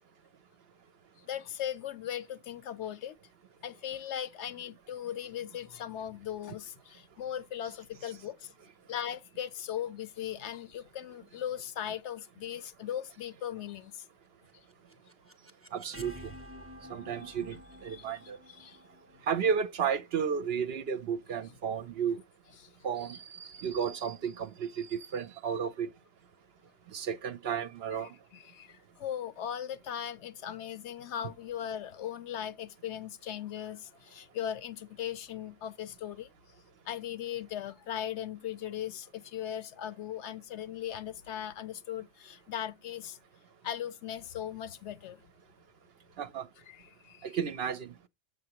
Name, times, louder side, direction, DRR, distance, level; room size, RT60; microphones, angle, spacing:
voice 1, 1.3-3.2 3.6-8.5 8.9-14.0 17.9-18.1 18.5-18.8 22.6-22.7 23.5-23.6 28.0-36.3 36.9-43.2 43.6-45.2 46.7-47.4, left 10 dB, 70° left, 0.9 m, -38 dB
sound 1, 14.5-20.4, equal, 15° right, 0.7 m, -51 dB
voice 2, 15.7-16.3 16.9-18.4 19.3-22.2 22.8-25.9 26.9-28.1 46.2-46.5 47.2-47.9, right 7 dB, 60° right, 0.8 m, -33 dB
7.7 x 6.9 x 2.9 m
omnidirectional pair, 1.3 m